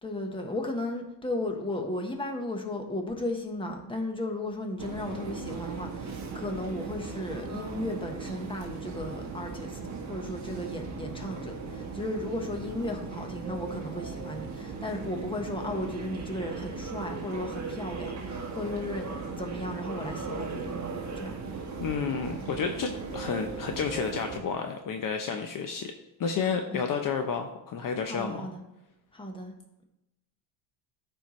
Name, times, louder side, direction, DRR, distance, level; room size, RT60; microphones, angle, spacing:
voice 1, 0.0-9.8 10.1-21.3 26.4-26.8 28.0-28.6 29.1-29.5, left 1 dB, 10° left, 3 dB, 1.3 m, -35 dB
sound 1, 4.8-24.4, right 4 dB, 35° right, 1.4 m, -38 dB
voice 2, 21.8-25.9 26.2-28.5, left 6 dB, 45° left, 5 dB, 0.8 m, -31 dB
13.5 x 4.5 x 3.2 m, 0.91 s
cardioid pair, 120°, 47 cm